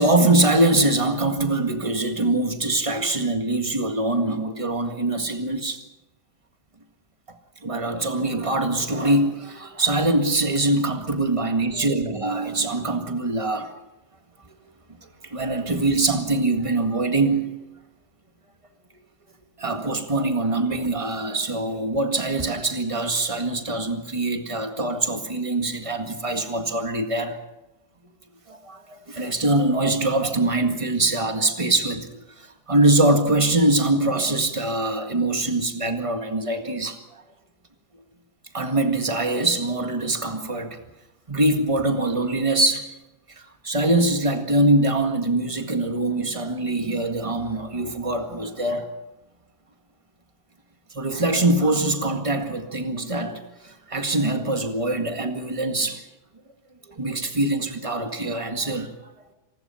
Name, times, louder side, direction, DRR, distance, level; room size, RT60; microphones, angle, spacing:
voice 1, 0.0-5.8 7.6-13.7 15.2-17.6 19.6-27.4 28.5-37.0 38.5-40.8 41.3-42.9 43.6-48.9 50.9-56.0 57.0-58.9, right 2 dB, 20° right, 1.9 m, -23 dB
27.5 x 19.5 x 5.8 m
omnidirectional pair, 1.7 m